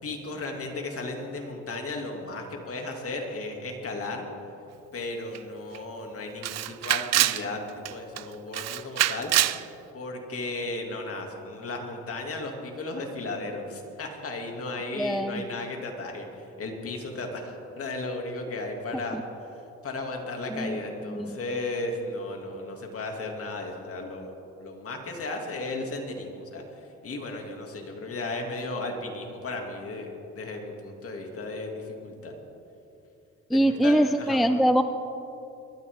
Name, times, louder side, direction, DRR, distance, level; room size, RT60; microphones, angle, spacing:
voice 1, 0.0-4.3 4.9-7.6 7.9-9.3 9.9-19.2 19.8-24.3 24.6-26.6 27.0-32.3 33.5-34.4, left 2 dB, 50° left, 2 dB, 2.6 m, -35 dB
Camera, 5.3-5.4 5.7-5.8 6.4-7.4 7.8-8.2 8.5-9.6, right 13 dB, 60° right, 0.5 m, -25 dB
voice 2, 15.0-15.4 19.1-19.2 20.5-20.8 21.1-21.4 33.5-34.8, equal, ahead, 9 dB, 0.5 m, -23 dB
22.5 x 13.0 x 3.7 m, 2.7 s
cardioid pair, 90°, 30 cm